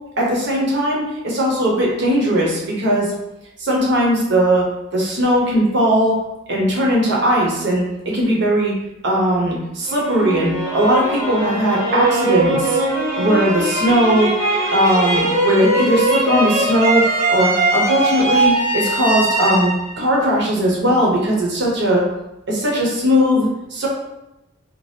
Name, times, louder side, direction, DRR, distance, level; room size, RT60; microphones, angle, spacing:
voice 1, 0.2-3.1 3.6-4.6 4.9-6.2 6.5-8.7 9.0-12.8 13.2-14.3 14.7-22.0 22.5-23.9, equal, 55° right, -3 dB, 0.7 m, -18 dB
sound 1, 9.9-20.9, right 2 dB, 15° right, 0.7 m, -20 dB
2.7 x 2.3 x 3.2 m, 0.92 s
head